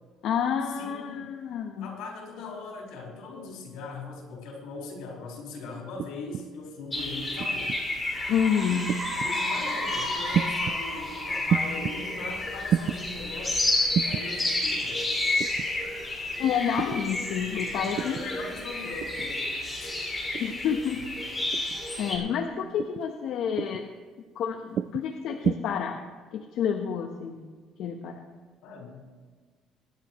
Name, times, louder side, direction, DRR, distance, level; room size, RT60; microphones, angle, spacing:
voice 1, 0.2-1.9 8.3-9.0 15.9-16.1 16.4-18.2 20.4-21.1 22.0-23.9 24.4-26.0 26.3-27.5 27.8-28.2, left 7 dB, 70° left, 4 dB, 1.0 m, -29 dB
voice 2, 0.7-1.3 1.8-7.7 9.2-13.7 14.0-15.1 17.9-19.5 19.8-20.1 28.6-29.1, left 3 dB, 85° left, -1 dB, 4.6 m, -40 dB
sound 1, 6.0-6.5 7.4-7.8 8.9-9.3 10.3-10.8 11.5-12.0 12.7-13.0 13.9-14.3 15.4-15.7 16.8-17.0 18.0-18.3 19.0-19.3 20.3-20.6 21.5-21.8 22.8-23.1 23.6-23.9 24.8-25.1 25.4-25.6, right 8 dB, 50° right, 0.4 m, -29 dB
sound 2, 6.9-22.2, left 2 dB, 15° left, 3.2 m, -31 dB
sound 3, 8.0-12.6, equal, 10° right, 4.8 m, -36 dB
24.0 x 10.5 x 3.1 m, 1.4 s
cardioid pair, 125°, 0 cm